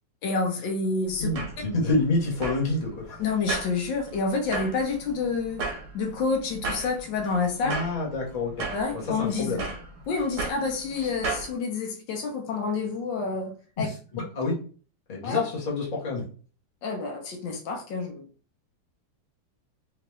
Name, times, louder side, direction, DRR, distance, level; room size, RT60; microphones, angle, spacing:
voice 1, 0.2-1.3 3.2-5.6 5.9-7.7 8.7-9.6 10.1-13.9 15.2-15.4 16.8-18.2, left 4 dB, 75° left, 1.4 m, -28 dB
sound 1, 1.1-11.5, right 3 dB, 55° right, 1.0 m, -36 dB
voice 2, 1.2-3.2 7.6-8.7 8.9-9.7 13.8-14.6 15.1-16.2, left 2 dB, 25° left, 1.0 m, -28 dB
3.4 x 3.0 x 3.0 m
omnidirectional pair, 2.1 m